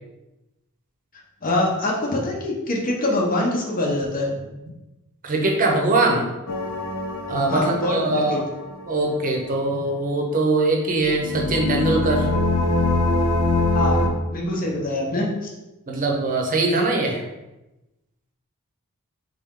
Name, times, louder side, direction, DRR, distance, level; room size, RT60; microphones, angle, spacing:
voice 1, 1.4-4.3 7.5-8.4 13.7-15.3, left 1 dB, 40° left, -2 dB, 0.9 m, -24 dB
voice 2, 5.2-6.3 7.3-8.4 8.9-12.3 15.9-17.2, right 2 dB, 40° right, 1 dB, 0.7 m, -21 dB
sound 1, 6.5-9.3 11.1-14.1, left 2 dB, 85° left, 0.8 m, -24 dB
3.6 x 3.4 x 3.7 m, 1.0 s
head